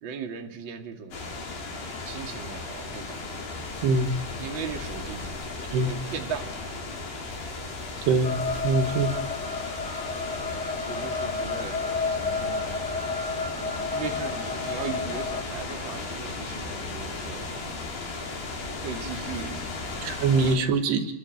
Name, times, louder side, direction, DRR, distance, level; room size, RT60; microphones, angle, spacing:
voice 1, 0.0-1.3 2.0-3.4 4.4-5.3 5.8-6.5 10.8-11.8 12.1-12.8 13.9-17.6 18.8-19.5 20.4-20.7, right 6 dB, 35° right, 3 dB, 2.4 m, -38 dB
sound 1, 1.1-20.6, left 3 dB, 65° left, 6.7 m, -35 dB
voice 2, 3.8-4.2 5.7-5.9 8.1-9.1 20.0-21.1, right 3 dB, 75° right, 7 dB, 3.6 m, -23 dB
sound 2, 8.2-15.4, left 4 dB, 50° left, 0.8 m, -31 dB
29.0 x 22.0 x 7.9 m, 0.87 s
omnidirectional pair, 4.9 m